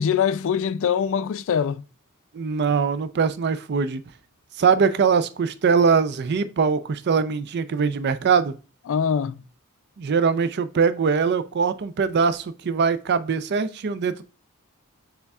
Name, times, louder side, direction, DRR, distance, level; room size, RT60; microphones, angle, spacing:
voice 1, 0.0-1.8 8.9-9.4, left 7 dB, 60° left, 0.3 m, -23 dB
voice 2, 2.3-4.0 4.6-8.6 10.0-14.2, right 5 dB, 50° right, 0.4 m, -22 dB
6.8 x 3.4 x 2.3 m
head